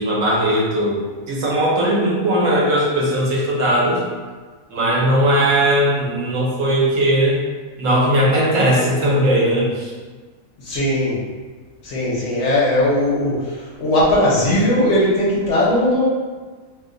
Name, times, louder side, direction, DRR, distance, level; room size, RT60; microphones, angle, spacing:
voice 1, 0.0-4.0 4.7-7.4 7.8-9.9, right 1 dB, 70° right, -4 dB, 1.1 m, -18 dB
voice 2, 10.6-11.2 11.8-16.1, left 1 dB, 60° left, -6 dB, 1.0 m, -18 dB
2.7 x 2.2 x 3.7 m, 1.4 s
omnidirectional pair, 1.4 m